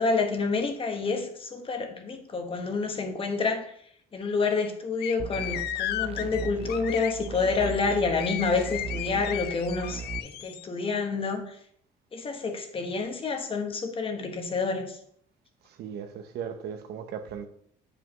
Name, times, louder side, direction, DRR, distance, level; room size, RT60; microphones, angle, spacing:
voice 1, 0.0-3.7 4.1-11.6 12.1-15.0, left 4 dB, 30° left, 1.1 m, -28 dB
sound 1, 5.0-10.6, left 13 dB, 75° left, 0.4 m, -35 dB
sound 2, 5.2-10.2, right 6 dB, 35° right, 0.5 m, -38 dB
voice 2, 15.7-17.5, right 7 dB, 70° right, 0.9 m, -37 dB
7.8 x 5.0 x 3.1 m
cardioid pair, 110°, 17 cm